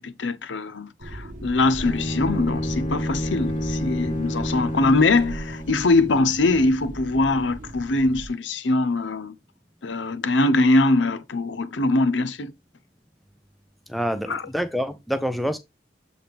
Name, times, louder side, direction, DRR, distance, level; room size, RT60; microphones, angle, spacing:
voice 1, 0.0-9.3 9.8-12.5 14.3-14.5, left 2 dB, 90° left, 0.8 m, -22 dB
sound 1, 1.0-8.3, right 1 dB, 45° right, 0.9 m, -37 dB
Bowed string instrument, 1.8-5.8, left 1 dB, 35° left, 1.0 m, -29 dB
voice 2, 13.9-15.6, equal, ahead, 0.6 m, -26 dB
7.6 x 4.2 x 3.5 m
head